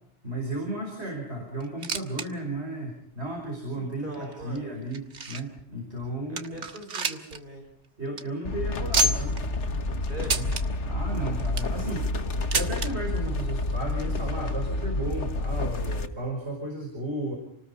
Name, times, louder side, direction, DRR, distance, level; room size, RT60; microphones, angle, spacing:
voice 1, 0.2-6.6 8.0-9.4 10.2-10.5 10.9-12.1 12.5-17.4, right 1 dB, 65° right, 2 dB, 5.4 m, -34 dB
sound 1, 1.6-2.3 2.6-2.7 3.3-3.4 4.1-5.6 6.0-6.1 6.4-7.4 7.7-7.8 8.1-8.2 8.9-9.4 10.2-10.6 11.3-11.8 12.5-12.9 13.9-14.0 14.2-14.3 15.1-15.2, right 2 dB, 90° right, 1.8 m, -28 dB
voice 2, 3.7-4.7 6.3-7.7 10.0-10.4, right 1 dB, 45° right, 2 dB, 5.1 m, -41 dB
sound 2, 8.4-16.1, left 2 dB, 75° left, 1.7 m, -29 dB
29.0 x 19.5 x 5.6 m, 0.71 s
omnidirectional pair, 1.2 m